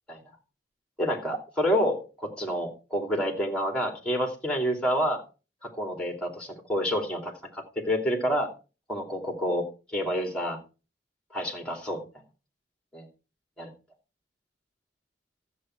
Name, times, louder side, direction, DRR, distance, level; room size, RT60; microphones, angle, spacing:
voice 1, 1.0-5.2 5.6-8.5 8.9-10.6 11.3-12.0 12.9-13.1 13.6-13.7, equal, 5° left, 2 dB, 2.7 m, -28 dB
13.5 x 7.7 x 4.5 m, 0.33 s
head